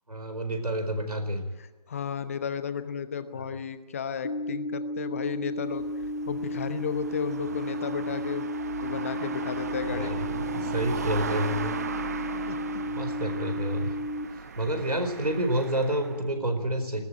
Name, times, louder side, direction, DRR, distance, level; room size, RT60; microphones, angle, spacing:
voice 1, 0.1-1.4 3.3-3.5 9.2-9.3 9.9-11.7 12.9-13.9 14.6-17.0, right 1 dB, 75° right, 7 dB, 4.7 m, -29 dB
voice 2, 1.9-5.9 6.3-8.5 8.8-10.2 12.5-12.8, left 7 dB, 20° left, 12 dB, 1.0 m, -33 dB
sound 1, 4.2-14.3, equal, 65° left, 2.5 m, -33 dB
sound 2, 5.6-16.2, right 6 dB, 25° right, 0.9 m, -38 dB
19.5 x 18.0 x 9.3 m, 1.2 s
figure-of-eight pair, 155°, 20 cm